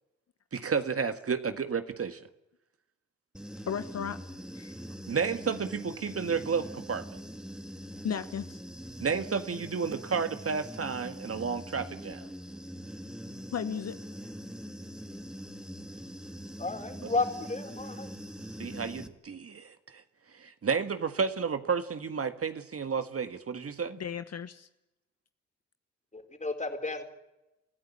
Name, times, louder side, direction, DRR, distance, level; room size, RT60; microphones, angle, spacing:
voice 1, 0.5-2.2 5.1-7.1 9.0-12.2 17.0-17.1 18.6-20.0 20.4-24.0, right 6 dB, 40° right, 9 dB, 1.8 m, -31 dB
Human voice / Buzz, 3.3-19.1, equal, ahead, 2.4 m, -43 dB
voice 2, 3.7-4.2 4.5-4.7 8.0-8.6 13.5-14.0 24.0-24.7, left 7 dB, 45° left, 11 dB, 1.2 m, -34 dB
voice 3, 16.6-18.1 26.1-27.0, left 3 dB, 20° left, 6 dB, 4.4 m, -32 dB
29.5 x 15.0 x 8.6 m, 0.94 s
hypercardioid pair, 45°, 34 cm